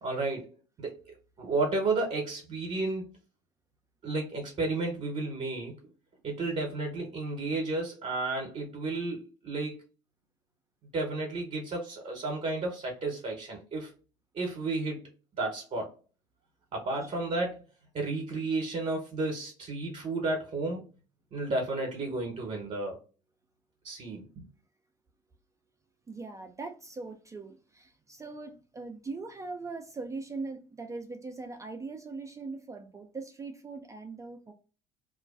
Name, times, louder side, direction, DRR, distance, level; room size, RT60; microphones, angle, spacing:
voice 1, 0.0-3.1 4.0-5.8 6.2-9.8 10.9-13.9 14.3-15.1 15.4-15.9 16.7-17.6 17.9-20.8 21.3-23.0 23.8-24.2, right 2 dB, 45° right, 0.8 m, -32 dB
voice 2, 26.1-34.5, right 3 dB, 20° right, 0.4 m, -41 dB
2.4 x 2.2 x 2.4 m
hypercardioid pair, 65°, 16 cm